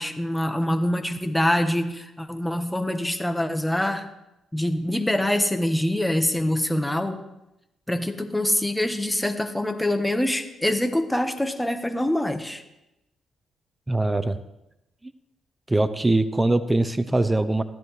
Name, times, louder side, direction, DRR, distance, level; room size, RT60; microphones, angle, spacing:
voice 1, 0.0-4.1 4.5-7.2 7.9-12.6, left 1 dB, 5° left, 7 dB, 1.2 m, -25 dB
voice 2, 13.9-14.4 15.7-17.6, right 2 dB, 15° right, 11 dB, 0.6 m, -22 dB
15.0 x 12.0 x 3.3 m, 0.91 s
cardioid pair, 90°, 0 cm